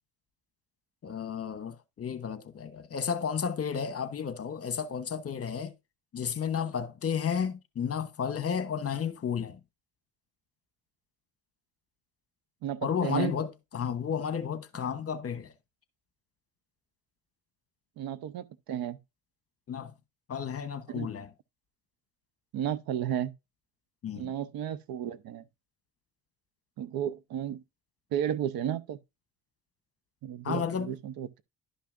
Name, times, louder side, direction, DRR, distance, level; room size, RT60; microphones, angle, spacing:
voice 1, 1.0-5.7 6.1-9.6 12.8-15.5 19.7-19.9 20.3-21.3 24.0-24.3 30.4-30.9, left 7 dB, 35° left, 1.1 m, -32 dB
voice 2, 12.6-13.3 18.0-19.0 20.9-21.1 22.5-23.3 24.1-25.4 26.8-27.6 28.1-29.0 30.2-31.4, right 10 dB, 65° right, 0.8 m, -33 dB
11.5 x 5.6 x 2.5 m
supercardioid pair, 75°, 40 cm